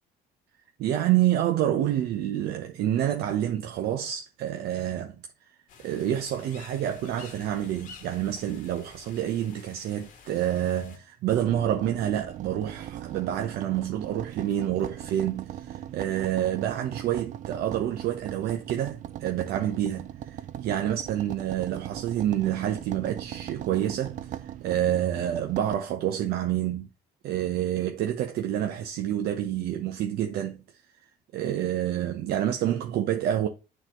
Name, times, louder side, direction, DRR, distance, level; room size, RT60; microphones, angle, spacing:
voice 1, 0.8-5.5 5.8-26.9 27.2-30.8 31.3-33.5, right 11 dB, 70° right, 0.8 m, -28 dB
sound 1, 5.7-11.0, left 5 dB, 50° left, 1.6 m, -50 dB
sound 2, 11.3-25.8, right 12 dB, 50° right, 0.4 m, -40 dB
9.1 x 4.1 x 3.0 m
cardioid pair, 140°, 17 cm